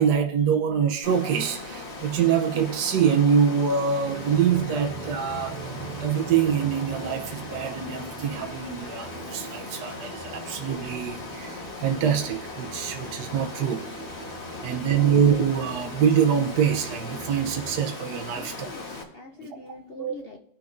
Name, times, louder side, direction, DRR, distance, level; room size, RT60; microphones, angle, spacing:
voice 1, 0.0-5.6 6.0-13.9 14.6-18.7 19.4-19.5 20.0-20.1, right 7 dB, 75° right, 1.3 m, -24 dB
Water, 1.0-19.0, left 2 dB, 40° left, 1.6 m, -38 dB
sound 1, 4.0-17.8, right 4 dB, 55° right, 1.0 m, -43 dB
voice 2, 14.5-15.1 18.3-20.4, left 4 dB, 65° left, 0.5 m, -44 dB
18.0 x 6.0 x 2.5 m
omnidirectional pair, 1.8 m